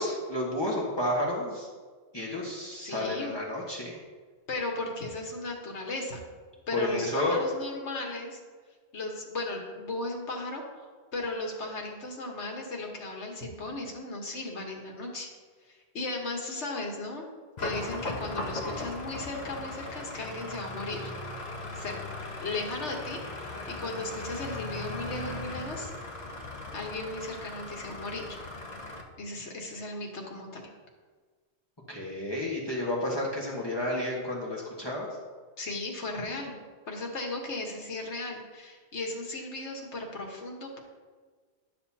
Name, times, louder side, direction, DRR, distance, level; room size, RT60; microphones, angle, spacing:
voice 1, 0.0-1.7 2.1-4.0 6.7-7.4 31.9-35.1, left 1 dB, 20° left, -5 dB, 1.5 m, -31 dB
voice 2, 2.8-3.3 4.5-6.3 6.7-8.4 8.9-15.3 15.7-17.3 17.6-21.1 21.7-22.0 22.4-25.9 26.7-28.2 29.2-30.7 35.6-36.6 36.9-40.8, left 2 dB, 85° left, 1 dB, 1.6 m, -36 dB
sound 1, 17.6-29.0, left 2 dB, 40° left, 1.0 m, -38 dB
11.5 x 6.8 x 2.8 m, 1.5 s
omnidirectional pair, 1.1 m